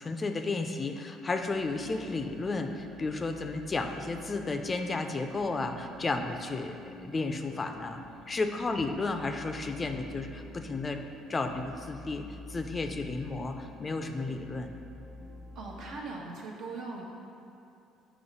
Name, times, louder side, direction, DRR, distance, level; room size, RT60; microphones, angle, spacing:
voice 1, 0.0-8.0 8.3-11.0 11.3-14.8, left 3 dB, 30° left, 6 dB, 0.4 m, -33 dB
sound 1, 1.2-16.0, equal, 35° right, 1.4 m, -48 dB
sound 2, 1.8-5.1 7.6-7.7, right 2 dB, 90° right, 1.2 m, -53 dB
voice 2, 15.5-17.0, right 3 dB, 65° right, -2 dB, 1.1 m, -40 dB
7.8 x 3.1 x 5.3 m, 2.7 s
supercardioid pair, 85°, 0 cm